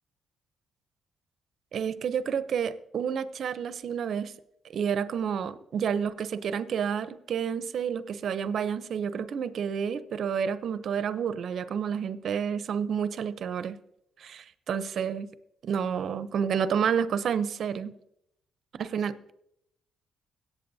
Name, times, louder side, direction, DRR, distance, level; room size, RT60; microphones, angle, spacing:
voice 1, 1.7-4.3 4.7-13.8 14.2-15.3 15.6-17.9 18.8-19.3, right 7 dB, 60° right, 14 dB, 0.6 m, -30 dB
17.5 x 8.2 x 2.7 m, 0.78 s
cardioid pair, 90°, 0 cm